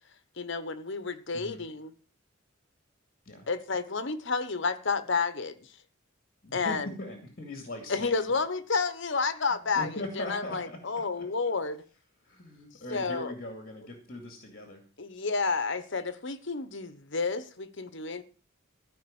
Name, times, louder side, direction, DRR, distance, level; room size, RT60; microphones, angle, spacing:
voice 1, 0.4-1.9 3.5-5.6 6.5-6.9 7.9-11.8 12.9-13.3 15.0-18.2, left 4 dB, 60° left, 1.1 m, -30 dB
voice 2, 6.4-8.3 9.5-11.3 12.2-14.8, left 1 dB, 45° left, 2.4 m, -40 dB
14.5 x 5.3 x 8.8 m
head